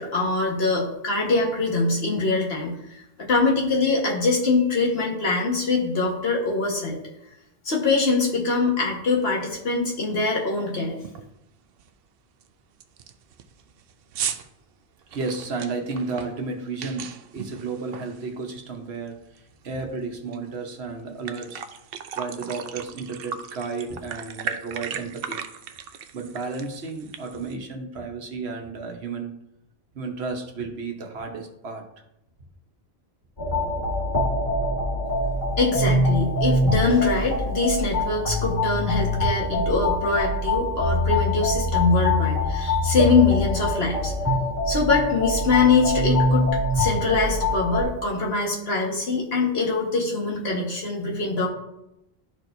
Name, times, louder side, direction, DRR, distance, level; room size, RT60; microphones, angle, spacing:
voice 1, 0.0-7.0 7.6-10.9 35.6-44.1 44.7-46.5 46.7-51.5, left 3 dB, 75° left, -2 dB, 1.7 m, -23 dB
sound 1, 9.4-9.5 10.0-10.3 10.6-10.7 11.0-11.4 11.8-11.9 12.4-12.5 12.8-18.8 19.1-20.4 20.7-20.8 21.1-27.6, right 7 dB, 70° right, 0.7 m, -37 dB
voice 2, 15.1-19.2 19.6-21.6 22.2-25.4 26.1-29.3 29.9-31.8, right 4 dB, 85° right, 3 dB, 1.3 m, -32 dB
sound 2, 33.4-47.8, left 1 dB, 45° left, 2.6 m, -24 dB
12.0 x 4.4 x 2.6 m, 0.85 s
omnidirectional pair, 1.1 m